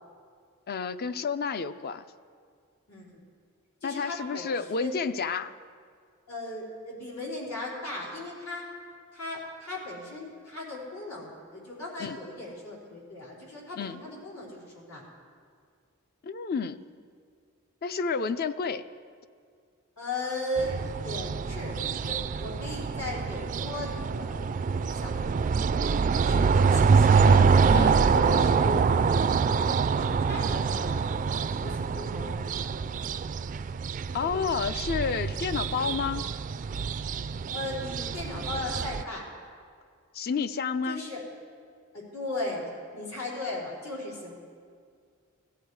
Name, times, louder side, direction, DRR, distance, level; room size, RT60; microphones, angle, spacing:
voice 1, 0.7-2.0 3.8-5.5 12.0-12.2 13.8-14.0 16.2-16.8 17.8-18.8 27.2-27.4 27.7-27.9 34.1-36.2 40.1-41.0, left 5 dB, 45° left, 13 dB, 0.4 m, -30 dB
voice 2, 2.9-3.2 3.8-5.0 6.3-8.6 9.1-15.0 20.0-25.6 26.1-27.2 27.7-32.9 37.5-39.3 40.9-41.2 41.9-44.3, left 1 dB, 85° left, -5 dB, 4.1 m, -37 dB
sound 1, 20.6-39.0, right 5 dB, 40° right, 0.3 m, -25 dB
16.0 x 13.0 x 4.7 m, 2.1 s
head